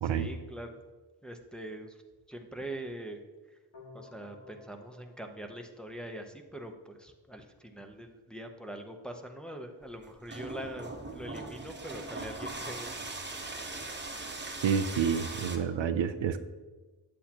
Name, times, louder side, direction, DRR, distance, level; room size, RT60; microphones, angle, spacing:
voice 1, 0.1-0.8 1.2-2.0 2.3-3.2 3.9-13.0, right 1 dB, ahead, 3 dB, 0.7 m, -43 dB
sound 1, 3.7-6.7, left 3 dB, 75° left, 2.5 m, -55 dB
sound 2, 9.8-15.6, right 2 dB, 25° right, 0.9 m, -40 dB
voice 2, 14.6-16.4, right 7 dB, 80° right, 10 dB, 0.6 m, -29 dB
8.4 x 8.2 x 2.9 m, 1.3 s
wide cardioid pair, 85°, 44 cm